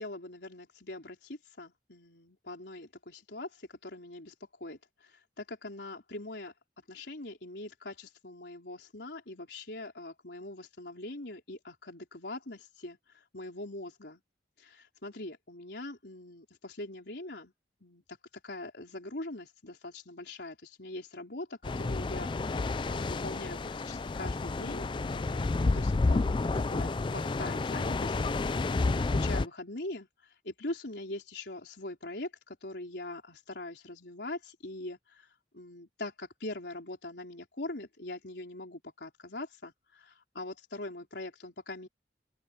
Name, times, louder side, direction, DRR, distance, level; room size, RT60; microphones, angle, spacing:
voice 1, 0.0-6.5 6.9-14.2 14.6-17.5 17.8-18.2 18.4-26.4 26.7-41.9, left 2 dB, 75° left, 3.9 m, -42 dB
sound 1, 21.6-29.5, left 3 dB, 30° left, 0.3 m, -30 dB
open air
head